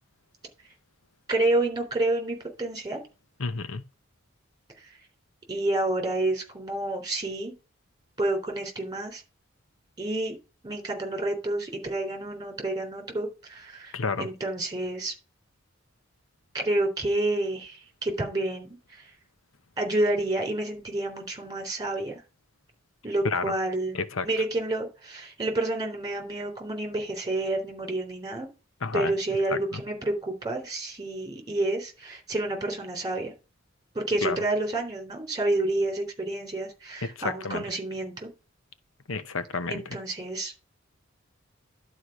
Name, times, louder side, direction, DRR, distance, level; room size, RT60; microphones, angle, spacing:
voice 1, 1.3-3.0 4.8-4.9 5.5-7.5 8.2-9.2 10.0-10.4 10.6-15.1 16.5-19.1 19.8-22.2 23.0-24.0 24.2-28.5 28.9-33.3 33.9-38.3 39.7-40.7, right 2 dB, 20° right, 3.6 m, -29 dB
voice 2, 3.4-3.8 13.9-14.3 23.2-23.5 23.9-24.3 28.8-29.1 29.5-29.8 34.2-34.4 37.0-37.6 39.1-40.0, left 4 dB, 75° left, 0.8 m, -30 dB
11.5 x 4.8 x 4.9 m
head